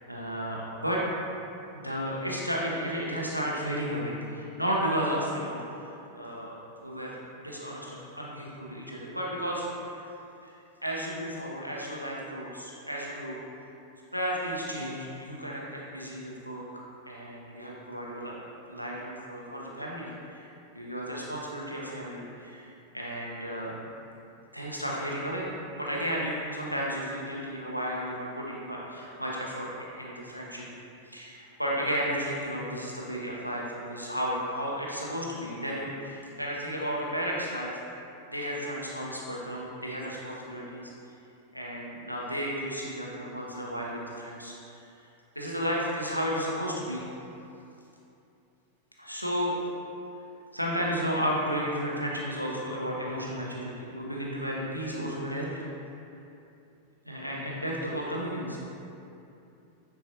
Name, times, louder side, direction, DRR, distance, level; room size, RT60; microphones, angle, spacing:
voice 1, 0.1-1.0 1.8-9.7 9.9-10.1 10.4-10.5 10.8-13.4 14.1-16.7 17.1-20.5 20.7-23.8 24.5-25.5 25.8-30.7 31.1-37.7 38.3-40.9 41.5-44.9 45.3-47.0 49.0-49.5 50.5-55.7 57.0-58.6, equal, 90° left, -4 dB, 1.0 m, -33 dB
9.3 x 4.6 x 2.9 m, 2.7 s
figure-of-eight pair, 90°, 0 cm